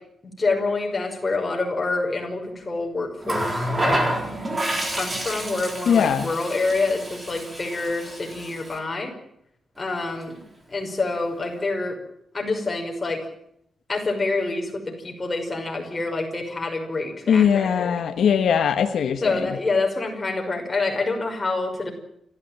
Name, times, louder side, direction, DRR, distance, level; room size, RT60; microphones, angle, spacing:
voice 1, 0.2-4.0 4.9-9.1 9.8-10.4 10.7-12.0 12.3-13.2 13.9-18.0 19.2-21.9, left 3 dB, 20° left, 2 dB, 5.6 m, -27 dB
Water tap faucet, 3.2-8.8 10.0-10.2, right 1 dB, 20° right, 4.1 m, -28 dB
voice 2, 5.9-6.3 17.3-19.3, left 7 dB, 70° left, 7 dB, 1.4 m, -20 dB
29.0 x 14.0 x 9.0 m, 0.74 s
wide cardioid pair, 175°, 0 cm